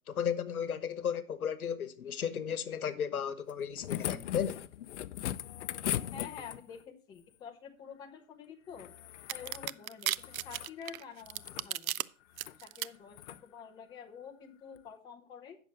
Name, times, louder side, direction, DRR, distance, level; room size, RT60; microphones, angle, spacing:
voice 1, 0.1-4.6, left 8 dB, 80° left, 1.1 m, -34 dB
sound 1, 3.5-6.8 8.7-9.8 10.1-10.7 11.2-11.7 12.3-12.6 13.1-13.4 14.8-14.9, left 12 dB, 55° left, 0.5 m, -39 dB
voice 2, 6.1-8.9 9.3-12.1 12.6-15.6, left 7 dB, 10° left, 0.6 m, -48 dB
sound 2, 9.3-12.0 12.4-12.9, right 13 dB, 75° right, 0.5 m, -34 dB
9.2 x 6.7 x 5.1 m
hypercardioid pair, 135°, 43 cm